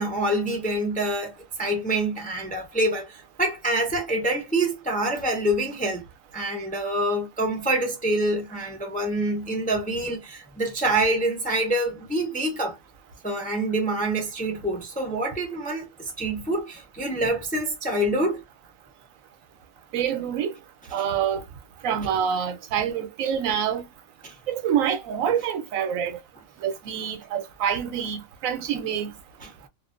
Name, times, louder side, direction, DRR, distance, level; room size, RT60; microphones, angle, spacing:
voice 1, 0.0-6.0 6.3-12.8 13.2-18.4 21.0-21.1 24.2-24.4 29.4-29.5, right 1 dB, 15° left, 0.3 m, -26 dB
voice 2, 19.9-20.5 20.9-21.4 21.8-23.8 24.5-26.2 26.6-29.1, right 8 dB, 90° right, 1.0 m, -26 dB
2.5 x 2.3 x 2.4 m
omnidirectional pair, 1.4 m